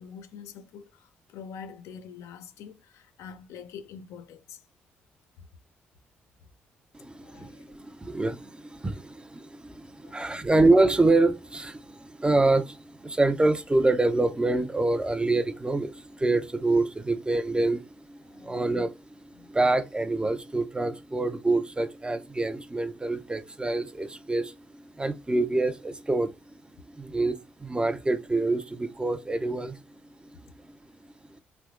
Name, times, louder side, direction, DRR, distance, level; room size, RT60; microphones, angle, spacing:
voice 1, 0.0-4.6 5.4-5.5 7.0-7.8 10.0-10.5 18.2-18.7 19.3-19.5, left 7 dB, 65° left, 0.4 m, -46 dB
voice 2, 6.9-26.3 26.9-29.8 30.2-30.3, right 2 dB, 15° right, 0.5 m, -26 dB
3.3 x 2.8 x 2.4 m
hypercardioid pair, 45°, 5 cm